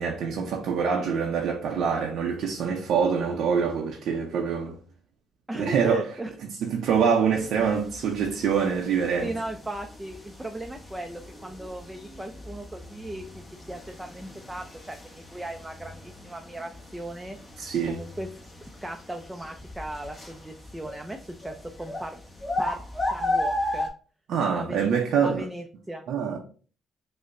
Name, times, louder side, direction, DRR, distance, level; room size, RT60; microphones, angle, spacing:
voice 1, 0.0-4.8 5.6-6.1 6.6-9.3 17.6-18.0 24.3-25.4 26.1-26.4, right 6 dB, 75° right, 0.5 m, -25 dB
voice 2, 5.5-6.3 9.2-17.4 17.8-18.3 18.6-22.2 22.6-23.9 24.6-24.9 25.2-26.0, right 1 dB, 10° right, 0.4 m, -37 dB
sound 1, 7.3-23.9, left 1 dB, 15° left, 1.0 m, -36 dB
5.1 x 2.1 x 2.4 m
cardioid pair, 90°, 0 cm